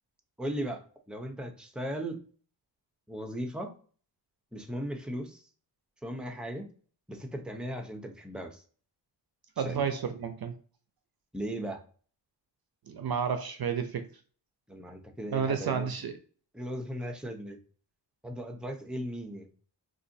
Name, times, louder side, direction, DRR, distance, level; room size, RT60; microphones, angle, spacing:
voice 1, 0.4-2.2 3.1-3.7 4.5-5.4 6.0-6.7 7.1-8.6 9.6-9.8 11.3-11.8 14.7-15.9 16.5-17.6 18.2-19.5, equal, ahead, 4 dB, 0.7 m, -37 dB
voice 2, 9.6-10.5 12.9-14.1 15.3-16.2, right 7 dB, 55° right, 8 dB, 0.6 m, -31 dB
4.1 x 2.5 x 2.6 m, 0.42 s
wide cardioid pair, 95°, 44 cm